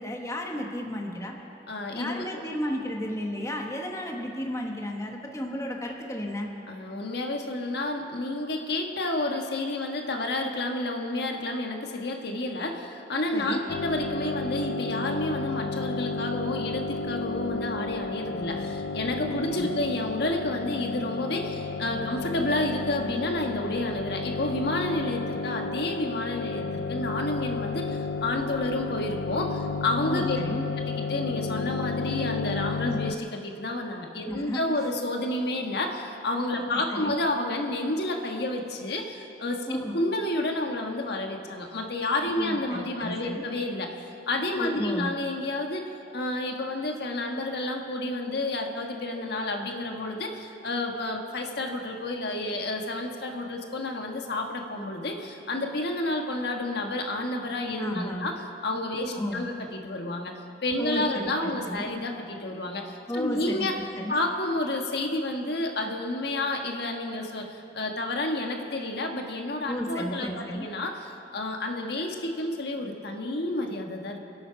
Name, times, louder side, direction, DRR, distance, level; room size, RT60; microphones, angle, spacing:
voice 1, 0.0-1.3 1.9-6.5 13.3-13.6 19.3-19.7 30.1-30.7 32.8-33.0 34.3-34.6 36.6-37.2 39.7-40.0 42.4-43.4 44.6-45.1 57.8-58.3 59.1-59.4 60.8-61.9 63.1-63.6 64.0-64.2 69.7-70.7, equal, 15° left, 1 dB, 1.3 m, -33 dB
voice 2, 1.7-2.4 6.7-30.4 30.8-45.8 46.1-63.8 64.1-67.5 67.7-74.2, left 2 dB, 65° left, 3 dB, 1.4 m, -30 dB
sound 1, 13.7-33.1, left 3 dB, 90° left, 0.5 m, -32 dB
26.0 x 8.8 x 5.7 m, 2.8 s
head